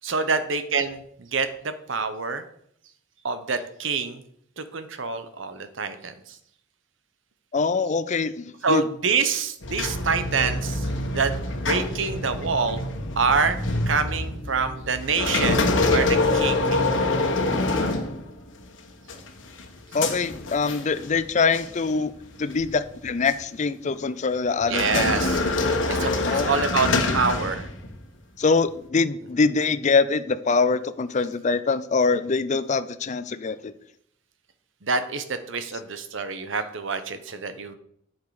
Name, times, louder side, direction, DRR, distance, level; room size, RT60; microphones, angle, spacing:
voice 1, 0.0-2.4 3.2-4.2 4.6-6.4 8.6-11.3 11.6-12.9 13.2-13.6 13.9-17.1 24.7-25.4 25.9-27.7 34.8-37.7, right 5 dB, 80° right, 10 dB, 0.9 m, -26 dB
voice 2, 7.5-8.8 19.9-22.1 22.4-25.1 26.3-26.6 28.4-33.7, left 4 dB, 40° left, 14 dB, 0.5 m, -24 dB
sound 1, 9.6-18.6 19.1-21.2 21.5-21.8 22.5-23.4 24.6-28.0, left 2 dB, 75° left, 1.3 m, -26 dB
8.4 x 6.5 x 4.9 m, 0.69 s
head